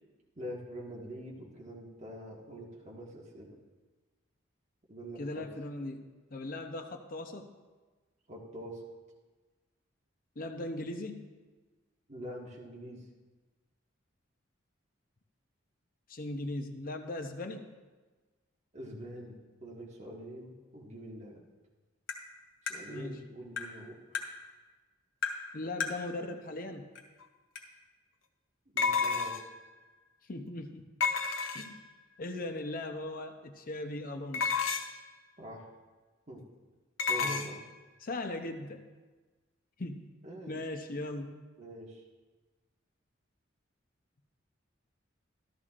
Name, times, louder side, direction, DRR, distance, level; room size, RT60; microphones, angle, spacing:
voice 1, 0.4-3.6 4.9-5.5 8.3-8.8 12.1-13.1 18.7-21.4 22.6-24.0 28.7-29.3 35.4-35.7 36.3-36.4 37.1-37.6 40.2-40.7 41.6-42.0, equal, 35° right, -4 dB, 1.6 m, -45 dB
voice 2, 5.2-7.5 10.4-11.2 16.1-17.7 22.9-23.2 25.5-26.9 30.3-30.8 31.5-31.8 32.2-34.5 37.2-37.5 38.0-38.8 39.8-40.1 40.5-41.3, left 2 dB, 45° left, 6 dB, 0.7 m, -39 dB
Tap, 22.1-22.2 22.7-22.8 23.6-23.7 24.1-24.3 25.2-25.4 25.8-26.0 27.0-27.1 27.6-27.7, left 6 dB, 60° left, 2.5 m, -35 dB
sound 1, 27.2-27.3 28.8-29.6 31.0-31.9 34.3-35.1 37.0-37.5, left 5 dB, 75° left, 0.8 m, -30 dB
14.0 x 13.5 x 2.5 m, 1.3 s
head